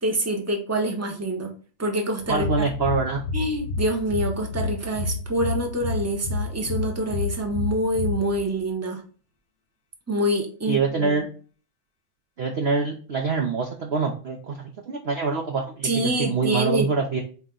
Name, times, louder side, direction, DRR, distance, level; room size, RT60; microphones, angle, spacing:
voice 1, 0.0-1.5 1.8-2.5 3.3-9.0 10.1-11.1 15.8-16.9, right 1 dB, 15° right, 2 dB, 0.6 m, -26 dB
sound 1, 2.2-8.7, left 3 dB, 55° left, 0.8 m, -30 dB
voice 2, 2.3-3.2 10.7-11.2 12.4-17.2, right 4 dB, 65° right, 2 dB, 0.6 m, -25 dB
8.3 x 3.0 x 3.9 m, 0.39 s
omnidirectional pair, 2.1 m